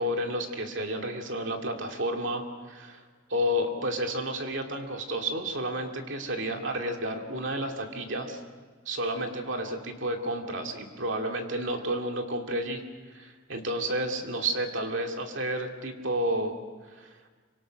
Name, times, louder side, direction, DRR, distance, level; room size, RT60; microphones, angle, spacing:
voice 1, 0.0-3.0 3.3-8.4 8.9-12.8 13.1-16.6 17.0-17.1, right 1 dB, 65° right, 3 dB, 2.5 m, -31 dB
26.5 x 25.0 x 6.4 m, 1.4 s
head